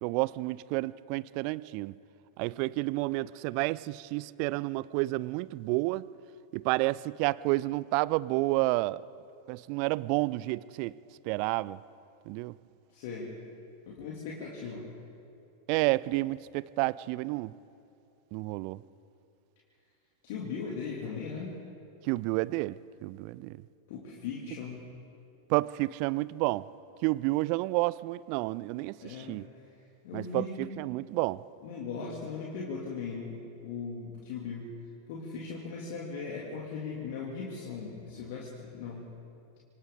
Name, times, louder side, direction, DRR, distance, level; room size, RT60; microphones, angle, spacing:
voice 1, 0.0-2.0 2.4-6.1 6.5-9.0 9.5-10.9 11.3-11.8 12.3-12.5 15.7-17.5 18.3-18.8 22.0-23.6 25.5-26.7 27.0-29.5 30.1-31.4, right 20 dB, 45° right, 21 dB, 0.4 m, -30 dB
voice 2, 12.9-13.4 13.9-14.8 20.2-21.6 23.9-24.8 29.0-29.4 30.0-30.8 31.6-34.7 35.1-39.1, left 5 dB, 50° left, -3 dB, 2.7 m, -38 dB
26.5 x 25.0 x 3.9 m, 2.7 s
figure-of-eight pair, 90°, 0 cm